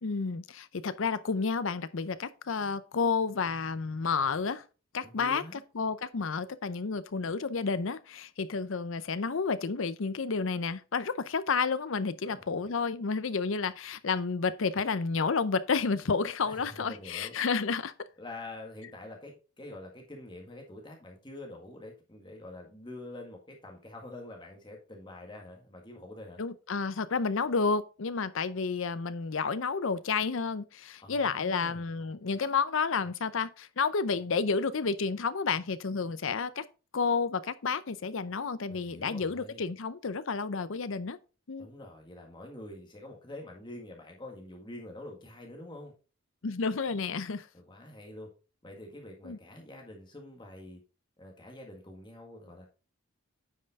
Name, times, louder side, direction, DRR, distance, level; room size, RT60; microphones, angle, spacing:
voice 1, 0.0-4.6 4.9-5.4 5.7-17.9 26.4-36.6 36.9-41.2 41.5-41.7 46.4-47.5 49.2-49.4, left 5 dB, 65° left, 0.6 m, -30 dB
voice 2, 5.0-5.6 12.2-12.4 16.4-17.3 18.2-26.4 31.0-31.8 38.7-39.7 41.6-45.9 47.5-48.3 48.6-50.8 51.2-52.7, left 1 dB, 20° left, 1.8 m, -46 dB
9.5 x 5.5 x 3.6 m
head